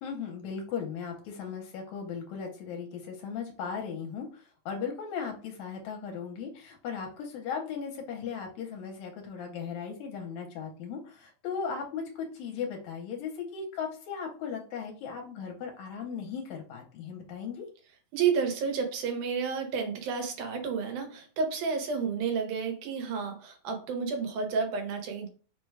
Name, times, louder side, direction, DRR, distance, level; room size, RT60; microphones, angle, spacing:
voice 1, 0.0-17.7, left 6 dB, 75° left, 1 dB, 2.0 m, -37 dB
voice 2, 18.1-25.3, right 5 dB, 90° right, 4 dB, 2.4 m, -31 dB
5.1 x 2.2 x 4.6 m, 0.39 s
omnidirectional pair, 3.5 m